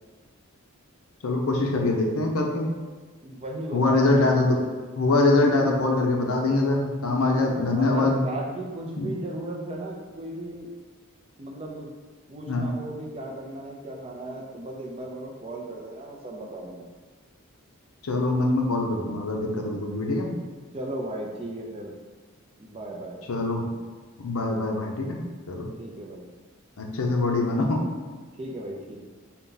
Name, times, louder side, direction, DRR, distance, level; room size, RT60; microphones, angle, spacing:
voice 1, 1.2-2.7 3.7-4.6 5.0-8.2 9.0-9.1 12.5-12.7 18.0-20.3 23.3-23.7 24.2-25.2 25.5-25.7 26.8-27.8, left 2 dB, 75° left, 1 dB, 0.6 m, -23 dB
voice 2, 3.2-4.4 7.0-10.7 11.4-11.9 12.3-16.9 20.7-21.9 22.6-23.2 25.8-26.3 28.4-29.0, right 1 dB, 25° right, -1 dB, 0.4 m, -36 dB
3.9 x 2.2 x 3.8 m, 1.4 s
head